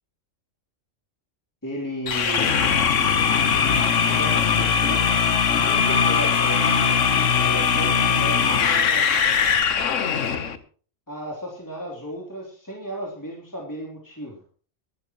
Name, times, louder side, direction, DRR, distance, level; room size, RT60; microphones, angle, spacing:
voice 1, 1.6-2.6 4.0-5.1 5.5-9.0 11.1-14.4, right 1 dB, 15° left, -3 dB, 3.4 m, -34 dB
sound 1, 2.1-10.6, left 6 dB, 80° left, 1.5 m, -20 dB
22.5 x 13.0 x 3.1 m, 0.41 s
omnidirectional pair, 1.3 m